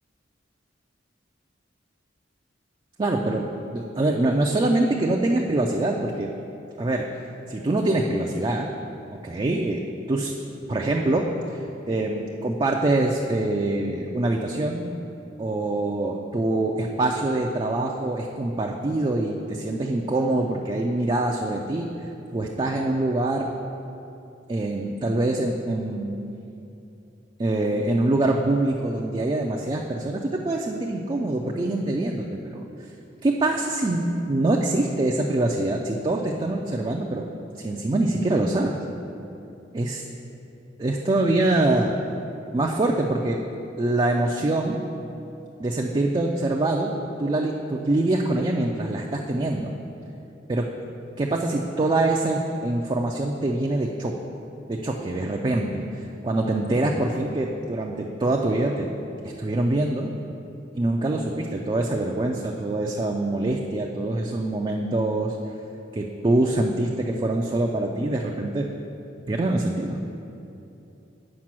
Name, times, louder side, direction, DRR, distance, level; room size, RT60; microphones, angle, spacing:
voice 1, 3.0-6.3 6.8-7.1 7.5-8.7 9.2-9.8 10.1-10.3 10.7-11.2 11.5-11.6 11.9-14.9 15.4-21.9 22.3-23.5 24.5-26.1 27.4-32.6 33.2-37.2 37.6-38.8 39.7-40.0 40.8-42.0 42.5-43.4 43.8-44.8 45.6-46.9 47.2-49.7 50.5-50.6 51.2-54.1 54.4-58.9 59.4-60.1 60.8-65.4 65.9-68.7 69.3-70.0, right 2 dB, 25° right, 0 dB, 0.4 m, -24 dB
7.3 x 5.0 x 6.1 m, 2.8 s
head